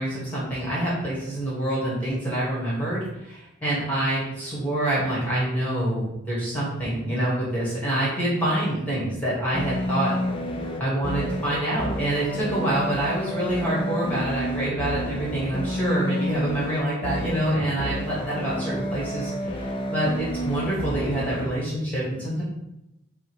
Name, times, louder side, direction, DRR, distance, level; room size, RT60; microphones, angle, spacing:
voice 1, 0.0-10.1 10.8-22.4, right 1 dB, 5° left, -7 dB, 1.2 m, -26 dB
sound 1, 9.5-21.6, equal, 25° left, 0.3 m, -30 dB
4.7 x 2.1 x 4.4 m, 0.89 s
head